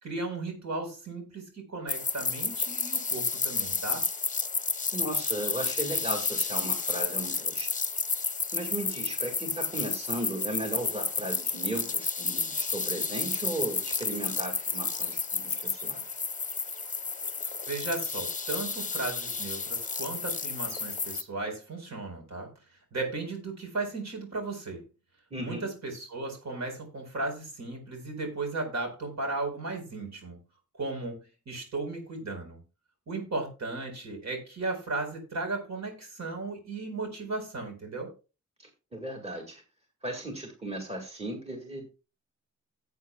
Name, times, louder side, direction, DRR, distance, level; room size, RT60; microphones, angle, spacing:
voice 1, 0.0-4.1 17.7-22.5 22.9-24.8 25.4-30.4 30.8-31.2 31.5-32.6 33.1-38.1, right 3 dB, 65° right, 3 dB, 4.5 m, -35 dB
sound 1, 1.9-21.2, left 4 dB, 25° left, 0.8 m, -31 dB
voice 2, 4.9-7.8 8.5-16.2 25.3-25.6 38.6-39.6 40.0-41.9, right 1 dB, 20° right, 2 dB, 2.0 m, -36 dB
17.5 x 8.2 x 2.3 m, 0.31 s
wide cardioid pair, 180°, 30 cm